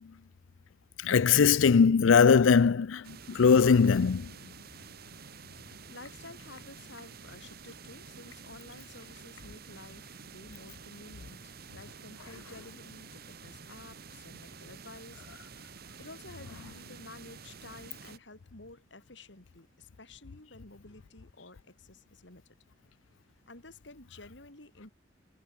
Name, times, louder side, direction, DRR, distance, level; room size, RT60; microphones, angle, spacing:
voice 1, 1.0-4.3, left 6 dB, 90° left, 0.5 m, -21 dB
sound 1, 3.0-18.2, right 5 dB, 55° right, 1.6 m, -49 dB
voice 2, 5.9-22.4 23.5-24.9, left 2 dB, 65° left, 3.8 m, -51 dB
head